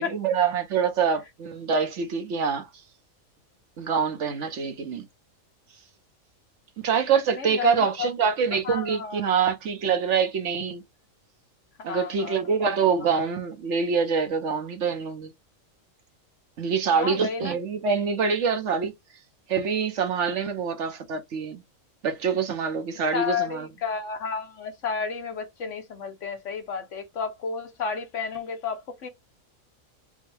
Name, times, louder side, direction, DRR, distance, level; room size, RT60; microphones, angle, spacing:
voice 1, 0.0-2.7 3.8-5.1 6.8-10.8 11.8-15.3 16.6-18.9 19.5-21.6 22.0-23.7, right 6 dB, 60° right, 1.1 m, -25 dB
voice 2, 7.3-8.1 8.6-9.2 11.9-12.4 16.9-17.6 23.1-29.1, left 6 dB, 65° left, 1.2 m, -31 dB
5.3 x 2.2 x 3.2 m
omnidirectional pair, 1.4 m